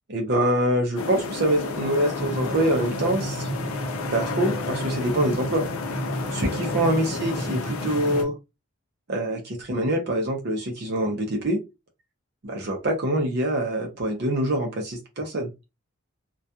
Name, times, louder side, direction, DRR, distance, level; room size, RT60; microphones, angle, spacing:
voice 1, 0.1-3.5 4.1-5.7 6.3-8.3 9.1-11.6 12.4-15.5, right 1 dB, 50° right, 1 dB, 0.5 m, -25 dB
sound 1, 1.0-8.2, left 4 dB, 80° left, 0.5 m, -32 dB
sound 2, 2.2-8.3, right 1 dB, 25° left, 0.9 m, -33 dB
2.3 x 2.2 x 2.7 m, 0.24 s
head